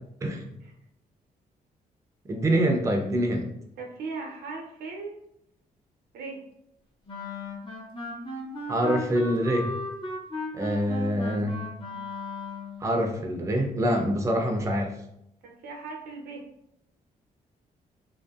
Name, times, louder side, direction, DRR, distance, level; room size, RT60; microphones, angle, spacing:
voice 1, 2.3-3.4 8.7-9.7 10.5-11.6 12.8-14.9, equal, 20° right, 2 dB, 0.4 m, -25 dB
voice 2, 3.8-5.2 6.1-6.4 15.4-16.5, right 4 dB, 85° right, 1 dB, 0.6 m, -38 dB
Wind instrument woodwind instrument, 7.1-12.8, left 2 dB, 35° left, 0.7 m, -36 dB
2.6 x 2.6 x 2.3 m, 0.78 s
cardioid pair, 115°, 15 cm